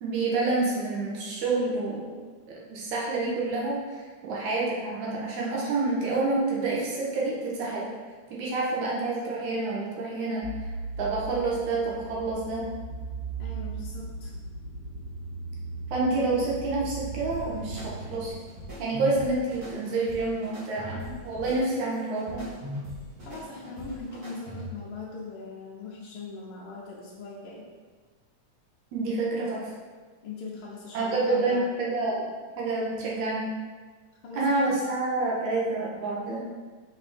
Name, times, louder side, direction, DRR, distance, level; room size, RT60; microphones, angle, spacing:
voice 1, 0.0-2.1 2.5-7.9 8.3-10.7 11.0-12.7 15.9-18.4 18.8-22.4 28.9-29.7 30.9-32.3 32.6-33.5 34.3-36.5, right 3 dB, 75° right, -4 dB, 2.5 m, -28 dB
sound 1, 10.4-18.3, right 3 dB, ahead, 0.7 m, -38 dB
voice 2, 13.4-14.3 23.2-27.7 30.2-31.6 34.2-34.4, left 4 dB, 75° left, -4 dB, 1.3 m, -40 dB
sound 2, 17.3-24.9, left 1 dB, 35° right, 2.1 m, -41 dB
6.0 x 4.4 x 4.3 m, 1.4 s
omnidirectional pair, 3.5 m